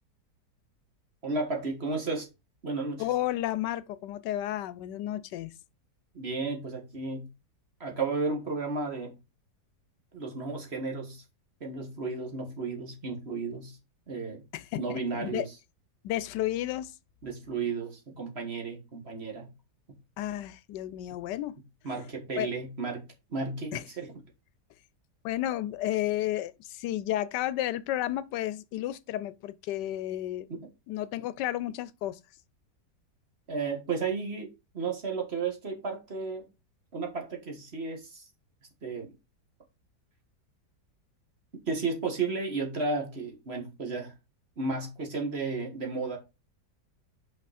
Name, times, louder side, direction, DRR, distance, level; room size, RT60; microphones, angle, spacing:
voice 1, 1.2-2.3 2.6-3.1 6.1-7.3 7.8-9.2 10.1-11.2 11.6-13.8 14.1-14.4 14.8-15.4 17.2-19.5 21.8-23.0 23.3-24.1 30.5-30.6 33.5-34.5 34.7-36.5 36.9-38.2 38.8-39.1 41.7-44.1 44.6-46.2, right 4 dB, 40° right, 1.8 m, -33 dB
voice 2, 3.0-5.6 14.5-15.5 16.0-16.9 20.2-21.5 22.4-22.5 23.7-23.8 25.2-30.5 30.9-32.2, left 13 dB, 85° left, 1.2 m, -32 dB
5.9 x 5.2 x 4.1 m
omnidirectional pair, 1.8 m